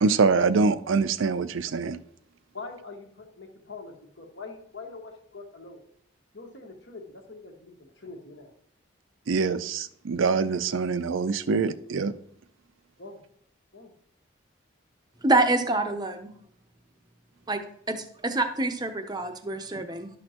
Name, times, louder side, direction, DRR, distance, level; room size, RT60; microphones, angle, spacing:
voice 1, 0.0-2.0 9.3-12.1, right 4 dB, 85° right, 0.5 m, -24 dB
voice 2, 2.5-5.8 6.3-8.5 13.0-13.2 13.7-13.9, left 3 dB, 65° left, 1.5 m, -43 dB
voice 3, 15.2-16.3 17.5-17.6 17.9-20.1, right 2 dB, 20° right, 0.6 m, -26 dB
11.5 x 6.3 x 2.9 m
head